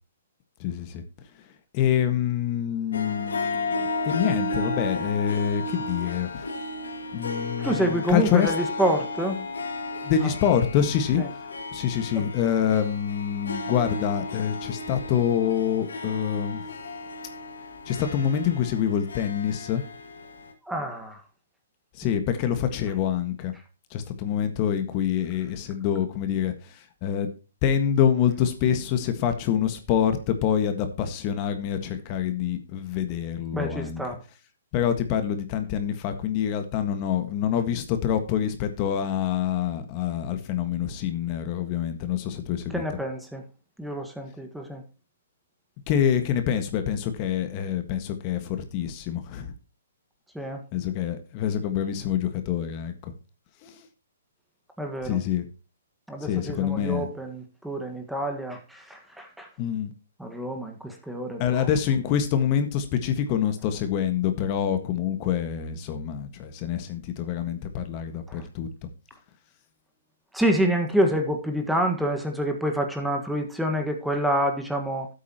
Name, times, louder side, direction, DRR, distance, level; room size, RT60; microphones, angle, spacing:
voice 1, 0.6-1.0 1.7-6.3 7.1-8.5 10.0-11.2 11.7-16.6 17.9-19.8 22.0-23.5 23.9-26.5 27.0-27.3 27.6-34.0 34.7-42.8 45.9-49.5 50.7-52.9 55.0-55.5 56.2-57.1 59.6-59.9 61.4-68.7, left 9 dB, 35° left, 8 dB, 1.6 m, -26 dB
Harp, 2.9-20.5, left 2 dB, 80° left, 2.4 m, -33 dB
voice 2, 7.6-9.4 10.2-10.3 11.2-11.3 12.1-12.2 20.7-21.2 33.5-34.2 42.7-43.4 43.8-44.8 50.3-50.6 54.8-55.2 56.1-59.5 60.2-61.7 68.3-68.4 70.3-75.1, right 1 dB, ahead, 4 dB, 1.6 m, -27 dB
12.5 x 8.5 x 3.0 m, 0.31 s
hypercardioid pair, 135°, 0 cm